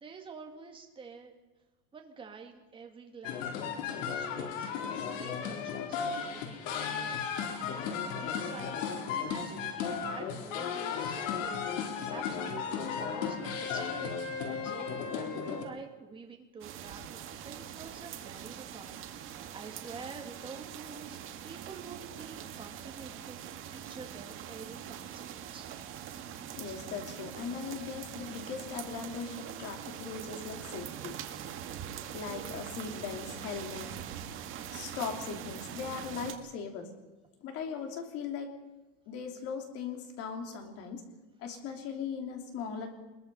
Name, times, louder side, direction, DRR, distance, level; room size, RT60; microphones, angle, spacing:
voice 1, 0.0-1.3 1.9-3.6 4.0-4.7 5.0-7.2 7.7-14.2 14.5-19.0 19.2-21.2 21.4-23.4 23.7-25.7, right 5 dB, 15° right, 2 dB, 2.1 m, -48 dB
sound 1, 3.2-15.6, left 6 dB, 85° left, 3.8 m, -35 dB
sound 2, 16.6-36.3, right 9 dB, 35° right, 1.8 m, -43 dB
voice 2, 26.6-31.2 32.1-33.9 34.7-36.9 37.4-38.5 39.1-41.0 41.4-42.9, left 6 dB, 40° left, 4 dB, 3.1 m, -39 dB
23.0 x 21.5 x 5.5 m, 1.2 s
supercardioid pair, 170°, 37 cm